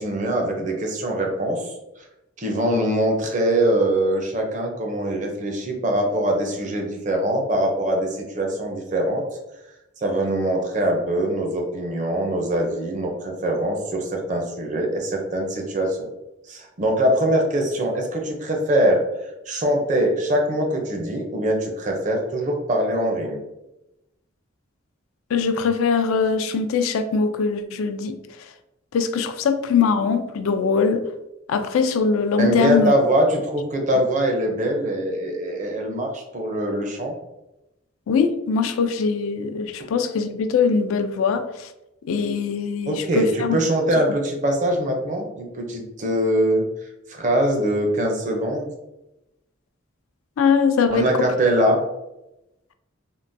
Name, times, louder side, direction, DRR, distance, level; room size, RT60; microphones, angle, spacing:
voice 1, 0.0-1.7 2.4-9.2 10.0-16.0 16.5-19.0 19.5-23.4 32.4-37.2 42.9-46.6 47.1-48.7 50.9-51.8, right 1 dB, 35° right, 2 dB, 0.5 m, -23 dB
voice 2, 25.3-28.5 28.9-31.0 31.5-32.9 38.1-41.7 42.0-43.6 50.4-51.3, left 5 dB, 85° left, 9 dB, 0.3 m, -22 dB
3.6 x 2.2 x 2.5 m, 0.93 s
head